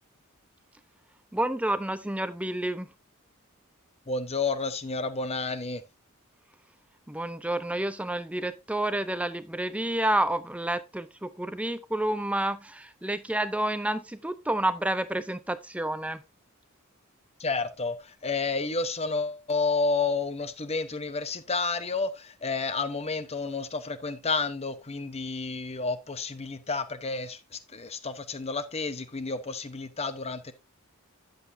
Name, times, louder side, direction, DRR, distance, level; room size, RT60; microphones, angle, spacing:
voice 1, 1.3-2.9 7.1-16.2, right 1 dB, 5° right, 0.5 m, -29 dB
voice 2, 4.1-5.8 17.4-30.5, left 4 dB, 30° left, 0.9 m, -30 dB
10.0 x 7.9 x 2.6 m
head